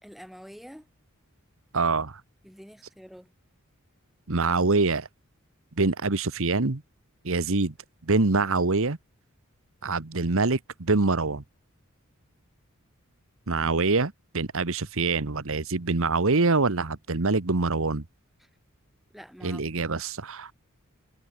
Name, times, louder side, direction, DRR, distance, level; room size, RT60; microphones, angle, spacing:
voice 1, 0.0-0.9 2.4-3.3 19.1-19.6, equal, ahead, 4.5 m, -46 dB
voice 2, 1.7-2.2 4.3-5.1 5.8-6.8 7.2-7.7 8.0-9.0 9.8-11.4 13.5-18.0 19.4-20.5, right 3 dB, 65° right, 1.3 m, -25 dB
head